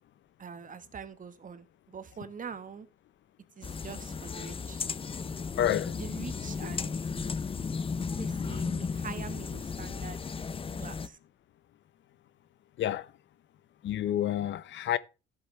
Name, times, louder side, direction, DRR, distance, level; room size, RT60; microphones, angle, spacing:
voice 1, 0.4-2.9 3.6-4.8 5.9-7.4 8.2-10.2 10.8-11.2, right 6 dB, 40° right, 1.3 m, -44 dB
sound 1, 3.6-11.1, left 5 dB, 30° left, 0.5 m, -35 dB
voice 2, 5.6-5.9 12.8-13.1 13.8-15.0, left 11 dB, 70° left, 0.7 m, -29 dB
13.5 x 7.8 x 3.2 m
cardioid pair, 90°, 20 cm